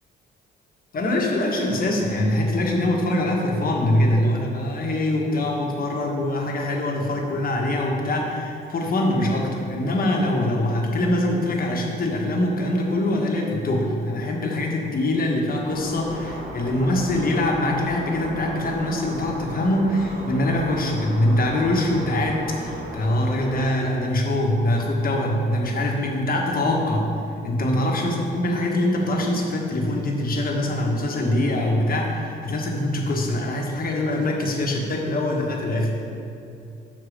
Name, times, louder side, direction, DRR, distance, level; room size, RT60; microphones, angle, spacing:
voice 1, 0.9-27.1 27.4-35.9, left 1 dB, 45° left, 0 dB, 1.4 m, -23 dB
sound 1, 15.7-23.7, right 1 dB, 50° right, 1.7 m, -36 dB
6.5 x 5.0 x 6.4 m, 2.7 s
cardioid pair, 90°, 20 cm